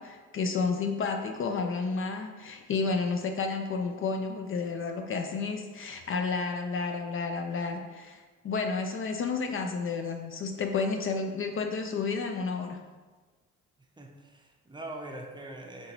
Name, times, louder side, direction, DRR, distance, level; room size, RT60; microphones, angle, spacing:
voice 1, 0.0-12.8, left 4 dB, 45° left, 5 dB, 0.4 m, -31 dB
voice 2, 14.0-15.9, right 1 dB, 15° right, 1 dB, 0.6 m, -42 dB
5.1 x 2.9 x 2.9 m, 1.3 s
cardioid pair, 90°, 30 cm